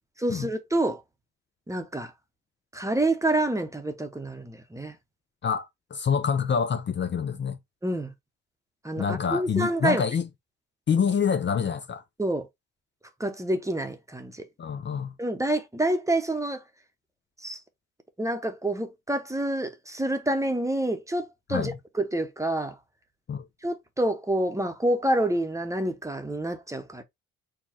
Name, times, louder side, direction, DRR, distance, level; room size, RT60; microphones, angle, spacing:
voice 1, 0.2-1.0 1.7-2.1 2.7-5.0 7.8-8.1 8.8-10.0 12.2-12.5 13.2-14.5 15.2-16.6 17.4-17.6 18.2-22.7 23.6-27.0, right 1 dB, 10° right, 0.9 m, -27 dB
voice 2, 5.4-7.6 9.0-10.3 10.9-12.0 14.6-15.1 21.5-21.7 23.3-23.5, left 7 dB, 40° left, 0.6 m, -26 dB
4.6 x 2.3 x 4.2 m
cardioid pair, 90°, 30 cm